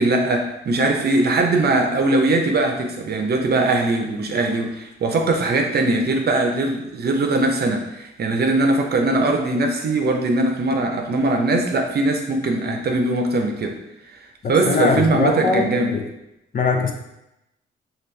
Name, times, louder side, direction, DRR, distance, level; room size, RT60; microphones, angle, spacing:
voice 1, 0.0-13.8 14.5-15.9, right 2 dB, 55° right, 3 dB, 0.7 m, -20 dB
voice 2, 14.4-16.1 16.5-16.9, left 4 dB, 45° left, 3 dB, 0.6 m, -21 dB
5.2 x 2.6 x 3.2 m, 0.88 s
cardioid pair, 80°, 20 cm